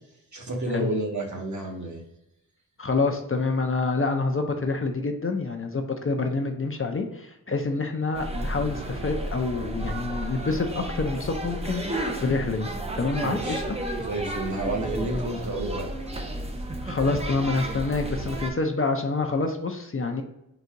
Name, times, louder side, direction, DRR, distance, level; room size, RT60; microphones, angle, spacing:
voice 1, 0.3-2.0 13.2-13.6 14.0-15.9, right 1 dB, 50° right, 0 dB, 1.1 m, -30 dB
voice 2, 2.8-12.7 13.0-13.8 16.8-20.2, left 3 dB, 35° left, 4 dB, 0.5 m, -27 dB
sound 1, 8.1-18.5, right 1 dB, 15° right, 0.5 m, -32 dB
3.9 x 2.7 x 4.5 m, 0.87 s
wide cardioid pair, 100°, 36 cm